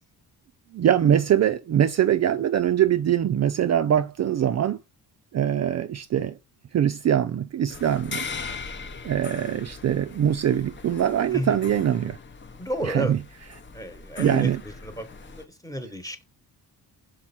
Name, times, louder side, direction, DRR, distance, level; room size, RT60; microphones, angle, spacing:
voice 1, 0.7-4.8 5.3-6.4 6.7-8.3 9.0-12.2 12.8-13.2 14.2-14.6, right 10 dB, 45° right, 0.5 m, -23 dB
sound 1, 7.7-15.5, left 5 dB, 30° left, 0.8 m, -40 dB
voice 2, 12.6-13.1 13.7-14.5 14.8-16.2, equal, 10° left, 1.2 m, -31 dB
6.2 x 4.4 x 4.3 m
cardioid pair, 110°, 37 cm